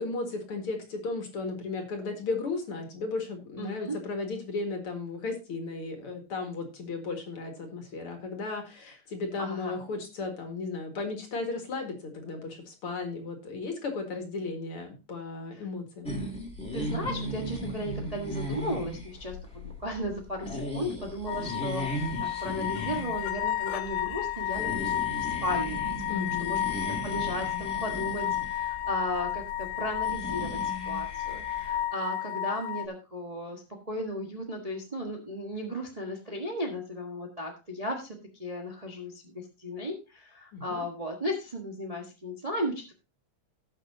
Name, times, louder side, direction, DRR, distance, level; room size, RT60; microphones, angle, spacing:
voice 1, 0.0-16.1 26.1-26.7 40.5-40.8, left 3 dB, 50° left, 4 dB, 2.5 m, -35 dB
voice 2, 3.6-4.0 9.4-9.8 15.5-15.6 16.7-22.1 22.4-26.7 27.0-42.9, equal, 70° right, 1 dB, 0.3 m, -35 dB
sound 1, 16.0-31.8, equal, ahead, 2.1 m, -37 dB
sound 2, 21.3-32.9, left 12 dB, 85° left, 1.4 m, -32 dB
18.0 x 6.2 x 2.7 m, 0.29 s
omnidirectional pair, 3.5 m